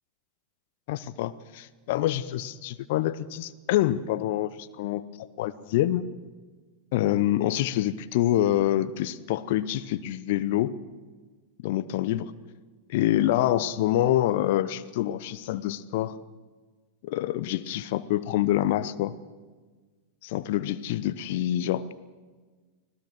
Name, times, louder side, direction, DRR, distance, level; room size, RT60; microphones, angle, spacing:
voice 1, 0.9-6.0 6.9-10.7 11.6-12.3 12.9-16.2 17.0-19.1 20.2-21.9, left 13 dB, 50° left, 16 dB, 0.8 m, -26 dB
25.0 x 17.0 x 6.3 m, 1.4 s
figure-of-eight pair, 90°, 0 cm